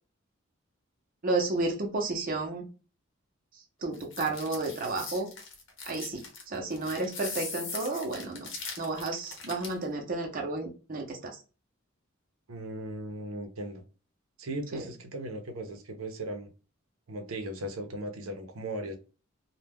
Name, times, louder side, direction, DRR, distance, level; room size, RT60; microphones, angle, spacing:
voice 1, 1.2-2.7 3.5-5.3 5.8-8.5 8.8-11.4 14.7-14.8, right 2 dB, 45° right, 0.6 m, -32 dB
sound 1, 3.9-9.8, left 4 dB, 65° left, 0.8 m, -40 dB
voice 2, 12.5-13.8 14.4-16.5 17.1-19.0, right 1 dB, 85° right, 0.6 m, -37 dB
2.2 x 2.1 x 3.4 m
head